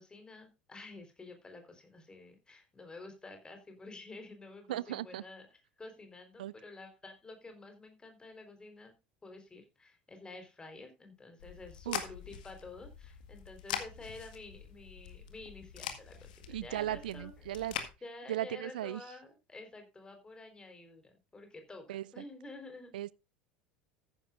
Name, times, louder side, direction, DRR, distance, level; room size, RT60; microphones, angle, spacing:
voice 1, 0.0-8.9 9.2-22.9, left 3 dB, 15° left, 4.2 m, -50 dB
voice 2, 4.7-5.2 6.4-6.5 11.9-12.0 16.5-17.7 18.3-19.0 21.9-22.0 22.9-23.1, right 13 dB, 70° right, 0.5 m, -36 dB
sound 1, 11.4-17.9, left 9 dB, 65° left, 1.8 m, -43 dB
14.5 x 10.5 x 2.5 m
figure-of-eight pair, 70°, 5 cm